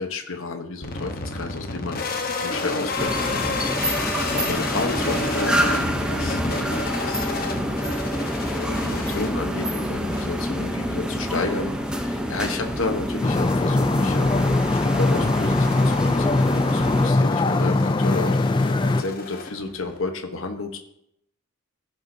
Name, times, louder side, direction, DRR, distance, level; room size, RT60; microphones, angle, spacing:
voice 1, 0.0-7.8 8.5-20.8, left 3 dB, 65° left, 5 dB, 1.1 m, -32 dB
sound 1, 0.8-20.0, left 3 dB, 45° left, 1.1 m, -32 dB
sound 2, 3.0-17.1, equal, 5° right, 0.7 m, -27 dB
sound 3, 13.2-19.0, left 2 dB, 20° left, 0.3 m, -21 dB
15.5 x 7.2 x 2.7 m, 0.76 s
head